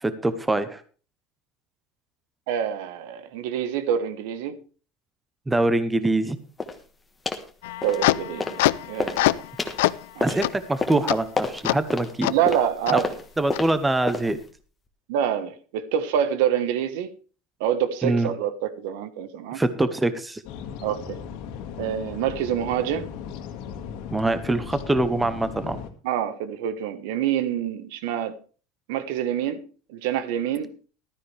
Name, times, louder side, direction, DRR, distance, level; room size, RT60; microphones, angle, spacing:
voice 1, 0.0-0.8 5.5-6.4 10.2-12.3 12.9-13.0 13.4-14.4 18.0-18.3 19.5-20.4 24.1-25.8, right 2 dB, 10° right, 0.8 m, -24 dB
voice 2, 2.5-4.6 7.8-9.4 10.1-10.2 12.3-13.1 15.1-17.2 17.6-19.6 20.8-21.2 21.8-23.1 26.0-28.4 28.9-30.7, right 10 dB, 75° right, 1.3 m, -26 dB
sound 1, 6.6-6.8 7.3-7.5 7.8-8.7 8.9-14.5, left 3 dB, 10° left, 1.3 m, -31 dB
sound 2, 7.6-9.5 9.8-10.1 10.4-10.5 11.1-11.2 11.7-11.8 12.2-12.3 12.9-13.0 13.5-13.6, left 17 dB, 90° left, 0.5 m, -23 dB
sound 3, 20.4-25.9, left 7 dB, 60° left, 1.9 m, -37 dB
14.5 x 13.0 x 3.4 m
cardioid pair, 160°, 0 cm